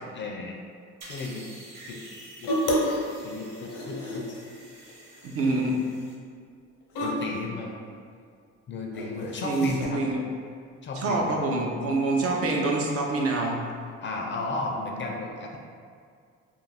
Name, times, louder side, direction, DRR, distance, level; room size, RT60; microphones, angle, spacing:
voice 1, 0.1-0.5 1.1-1.5 1.9-2.0 2.4-2.5 3.2-4.4 7.0-7.8 8.7-10.0 10.8-11.4 14.0-15.6, left 3 dB, 40° left, 1 dB, 0.4 m, -34 dB
sound 1, 1.0-6.1, right 1 dB, 85° right, 0.7 m, -48 dB
sound 2, 2.4-3.1 3.3-4.4 4.9-5.3 5.6-5.7 6.9-7.4 8.9-9.9, equal, 85° left, 0.6 m, -29 dB
voice 2, 5.2-5.8 9.4-10.3 11.0-13.6, right 2 dB, 50° right, -1 dB, 0.5 m, -26 dB
2.4 x 2.3 x 3.3 m, 2.2 s
cardioid pair, 90°, 30 cm